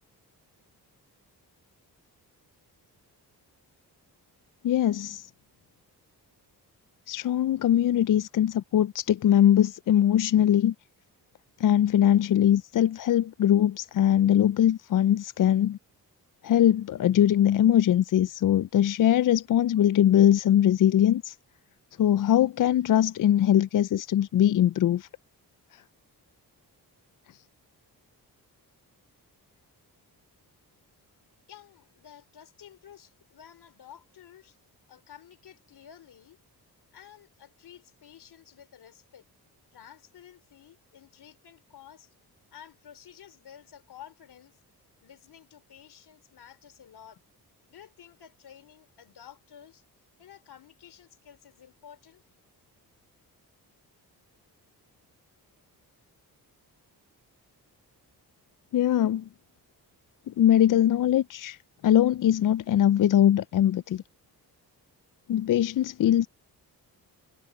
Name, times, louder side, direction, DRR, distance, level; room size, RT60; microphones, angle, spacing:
voice 1, 4.6-5.3 7.1-10.7 11.6-15.8 16.4-21.4 22.0-25.1 58.7-59.3 60.3-61.6 61.8-64.0 65.3-66.3, left 11 dB, 55° left, 0.5 m, -22 dB
voice 2, 31.5-34.6 34.9-36.4 36.9-39.2 39.7-42.1 42.5-44.6 45.0-47.2 47.7-49.8 50.2-52.2, left 9 dB, 75° left, 3.1 m, -51 dB
cardioid pair, 70°, 40 cm